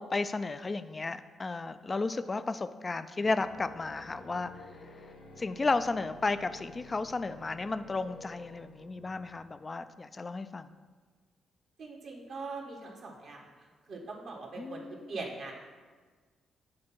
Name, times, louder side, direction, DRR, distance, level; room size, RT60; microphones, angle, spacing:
voice 1, 0.0-4.7 5.4-10.7 14.6-15.1, left 3 dB, 35° left, 12 dB, 0.4 m, -33 dB
sound 1, 3.4-9.7, left 2 dB, 90° left, 1.7 m, -52 dB
voice 2, 11.8-13.4 13.9-14.8 15.1-15.5, right 3 dB, 65° right, -2 dB, 1.5 m, -41 dB
7.7 x 3.6 x 5.9 m, 1.4 s
hypercardioid pair, 45°, 0 cm